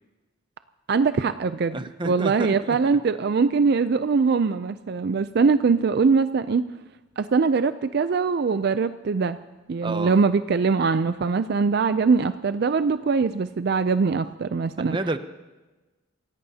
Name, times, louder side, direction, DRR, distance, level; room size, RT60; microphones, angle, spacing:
voice 1, 0.9-1.8 2.0-6.6 7.2-9.4 9.7-15.0, right 4 dB, 55° right, 12 dB, 0.4 m, -22 dB
voice 2, 1.7-2.8 9.8-10.2 14.8-15.2, right 2 dB, 25° right, 10 dB, 0.7 m, -30 dB
27.5 x 16.5 x 2.8 m, 1.1 s
head